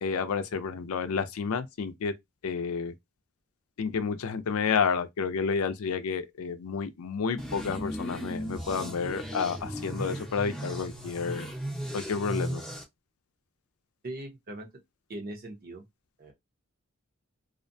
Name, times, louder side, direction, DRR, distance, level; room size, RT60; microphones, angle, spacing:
voice 1, 0.0-2.1 2.4-2.9 3.8-11.5 11.9-12.6, left 5 dB, 85° left, 0.4 m, -30 dB
sound 1, 7.4-12.8, equal, 5° left, 0.6 m, -36 dB
voice 2, 14.0-14.8 15.1-15.8 16.2-16.3, right 1 dB, 45° right, 0.8 m, -40 dB
2.4 x 2.1 x 2.6 m
head